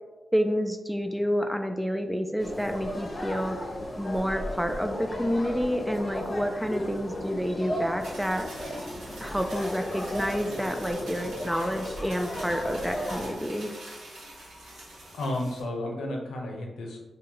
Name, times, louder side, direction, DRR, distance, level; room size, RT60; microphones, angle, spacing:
voice 1, 0.3-3.6 4.0-8.5 9.2-13.7, equal, 5° right, 5 dB, 0.3 m, -29 dB
sound 1, 2.4-13.4, equal, 35° left, 0.9 m, -35 dB
sound 2, 8.0-15.6, right 1 dB, 90° right, 1.3 m, -45 dB
voice 2, 15.1-17.0, left 1 dB, 90° left, 0 dB, 0.6 m, -32 dB
3.7 x 2.7 x 2.9 m, 1.2 s
cardioid pair, 50°, 0 cm